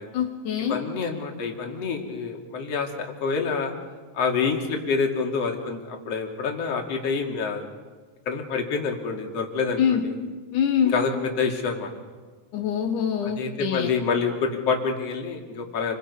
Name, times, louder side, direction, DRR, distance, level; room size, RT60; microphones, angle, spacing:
voice 1, 0.1-0.8 9.8-10.1 10.5-10.9 12.5-13.9, left 8 dB, 80° left, 4 dB, 2.9 m, -24 dB
voice 2, 0.7-3.7 4.1-7.6 8.3-10.1 10.8-11.9 13.2-16.0, left 5 dB, 55° left, 2 dB, 3.4 m, -27 dB
28.5 x 23.0 x 5.5 m, 1.4 s
omnidirectional pair, 3.5 m